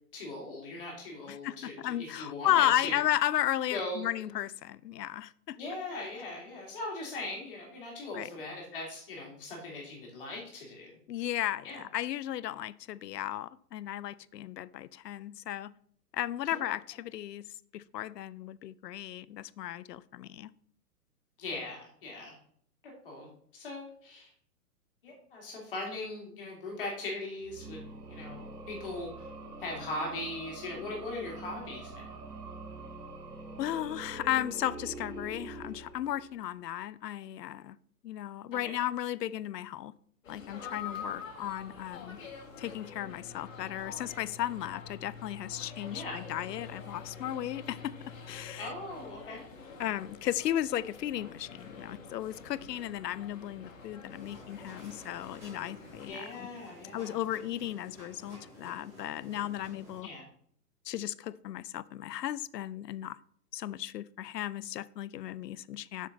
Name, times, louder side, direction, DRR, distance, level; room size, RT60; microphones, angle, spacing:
voice 1, 0.1-3.0 3.7-4.3 5.6-10.9 11.6-11.8 16.5-16.6 21.4-22.4 22.8-24.3 25.0-27.8 28.1-29.3 29.6-32.2 38.5-38.8 45.9-46.2 48.6-49.4 56.1-57.2 60.0-60.3, left 2 dB, 35° left, 2.4 m, -40 dB
voice 2, 1.3-5.6 8.1-8.3 11.1-15.7 16.1-20.5 33.6-37.8 38.0-39.9 40.3-42.2 42.6-48.0 48.3-48.7 49.8-56.5 56.9-60.1 60.9-63.2 63.5-66.1, left 12 dB, 80° left, 0.5 m, -34 dB
sound 1, 27.4-36.5, right 2 dB, 70° right, 1.9 m, -45 dB
sound 2, 40.2-56.1, left 5 dB, 55° left, 2.0 m, -46 dB
sound 3, 54.1-60.0, left 1 dB, 10° right, 2.0 m, -52 dB
6.5 x 6.5 x 3.9 m
hypercardioid pair, 180°, 48 cm